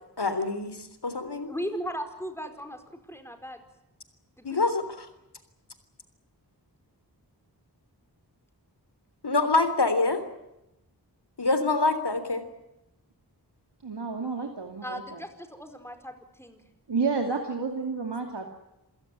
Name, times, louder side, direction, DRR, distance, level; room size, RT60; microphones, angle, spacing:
voice 1, 0.2-1.5 4.4-5.1 9.2-10.2 11.4-12.4, left 3 dB, 75° left, 11 dB, 3.6 m, -25 dB
voice 2, 1.5-3.6 4.4-4.7 14.8-16.6, equal, 5° left, 6 dB, 4.8 m, -37 dB
voice 3, 13.8-15.0 16.9-18.5, right 4 dB, 90° right, 3 dB, 2.5 m, -30 dB
27.5 x 16.5 x 9.7 m, 0.90 s
wide cardioid pair, 45°, 40 cm